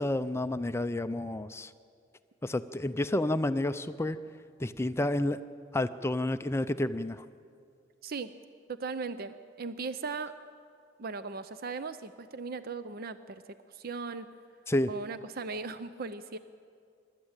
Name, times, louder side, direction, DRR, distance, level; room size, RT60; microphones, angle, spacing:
voice 1, 0.0-1.7 2.4-4.2 4.6-5.4 5.7-7.2 14.7-14.9, left 1 dB, 15° left, 12 dB, 0.4 m, -30 dB
voice 2, 8.7-10.3 11.0-13.4 13.7-14.3 14.9-16.4, right 4 dB, 50° right, 12 dB, 0.6 m, -38 dB
25.0 x 13.0 x 8.9 m, 2.3 s
head